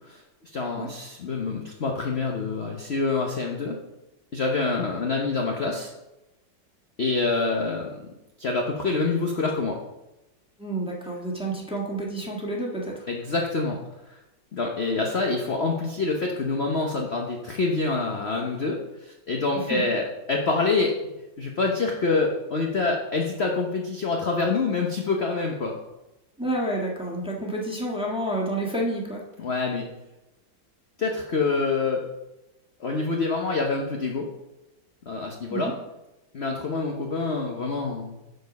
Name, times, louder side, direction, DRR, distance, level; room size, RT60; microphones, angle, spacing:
voice 1, 0.1-3.8 4.3-5.9 7.0-8.0 8.4-9.8 13.1-13.8 14.1-14.2 14.5-21.1 21.4-25.8 29.4-29.9 31.0-32.0 32.8-34.3 35.1-35.7 36.3-38.2, left 3 dB, 45° left, 1 dB, 1.0 m, -26 dB
voice 2, 10.6-13.1 19.5-19.9 26.4-29.2 35.5-35.7, right 1 dB, 5° right, -3 dB, 1.5 m, -29 dB
13.0 x 4.6 x 5.3 m, 0.97 s
omnidirectional pair, 2.1 m